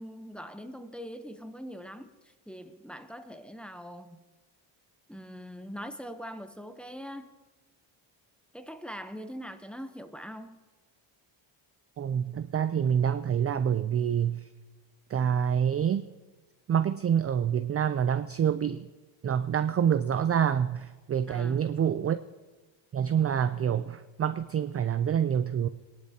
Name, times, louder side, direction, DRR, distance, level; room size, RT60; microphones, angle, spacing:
voice 1, 0.0-2.1 2.5-4.2 5.1-7.3 8.5-10.6 21.3-21.6, equal, ahead, 7 dB, 0.7 m, -42 dB
voice 2, 12.0-14.4 15.1-16.1 16.7-18.9 19.2-22.2 22.9-25.7, right 8 dB, 30° right, 11 dB, 0.4 m, -27 dB
21.0 x 11.0 x 2.8 m, 1.2 s
cardioid pair, 110°, 49 cm